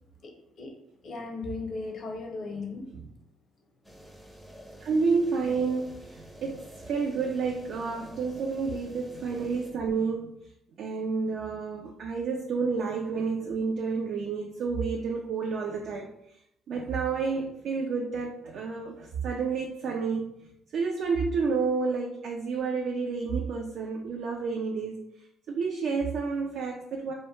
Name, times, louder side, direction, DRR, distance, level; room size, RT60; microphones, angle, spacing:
voice 1, 0.2-0.7 1.0-3.0, left 3 dB, 55° left, 0.5 m, -37 dB
sound 1, 3.8-9.7, right 1 dB, 5° left, 0.4 m, -49 dB
voice 2, 4.8-10.3 10.8-16.1 16.7-20.4 20.7-25.0 25.5-27.1, right 4 dB, 65° right, 0.3 m, -30 dB
2.1 x 2.0 x 3.0 m
supercardioid pair, 80°, 0 cm